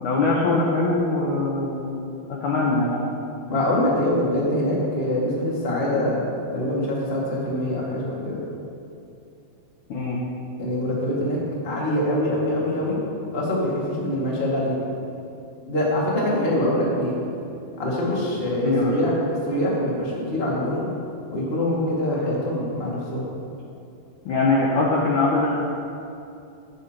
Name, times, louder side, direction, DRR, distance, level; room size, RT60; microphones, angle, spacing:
voice 1, 0.0-2.1 2.4-3.1 9.9-10.2 18.6-18.9 24.3-25.5, left 3 dB, 75° left, -4 dB, 1.8 m, -22 dB
voice 2, 3.5-6.2 6.5-8.4 10.6-11.4 11.6-13.0 13.3-14.7 15.6-17.2 17.8-20.9 21.3-23.2, left 1 dB, 40° left, -5 dB, 0.8 m, -24 dB
15.5 x 9.1 x 3.0 m, 2.7 s
omnidirectional pair, 4.9 m